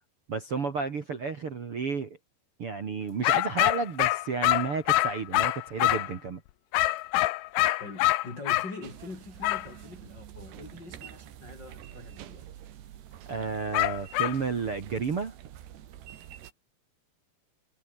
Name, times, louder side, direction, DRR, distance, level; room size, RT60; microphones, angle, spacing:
voice 1, 0.3-2.2 2.6-6.4 13.3-15.3, right 5 dB, 45° right, 2.0 m, -32 dB
sound 1, 3.2-6.1 6.7-8.7 9.4-9.7 13.7-14.4, left 17 dB, 75° left, 2.9 m, -25 dB
voice 2, 7.8-12.6, left 3 dB, 20° left, 5.8 m, -44 dB
sound 2, 8.8-16.5, right 11 dB, 65° right, 3.9 m, -47 dB
omnidirectional pair, 5.4 m